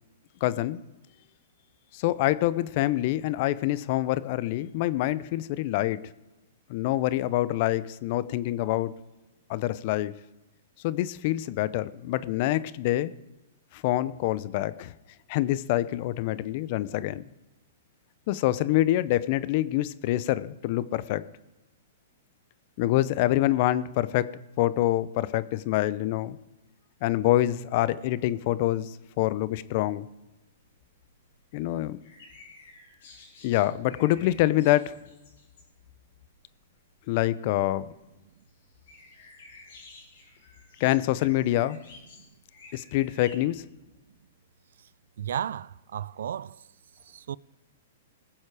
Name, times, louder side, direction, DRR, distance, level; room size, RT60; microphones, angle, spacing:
voice 1, 0.4-0.8 1.9-6.0 6.7-8.9 9.5-10.1 10.8-13.1 13.7-14.9 15.3-17.2 18.3-21.2 22.8-26.4 27.0-30.1 31.5-32.0 33.4-35.0 37.1-37.9 40.8-41.8 42.7-43.7, left 15 dB, 50° left, 0.6 m, -26 dB
sound 1, 28.9-43.4, left 3 dB, 65° left, 3.8 m, -54 dB
voice 2, 45.2-46.6 47.1-47.4, right 9 dB, 75° right, 0.3 m, -34 dB
20.0 x 7.4 x 4.9 m
hypercardioid pair, 130°, 0 cm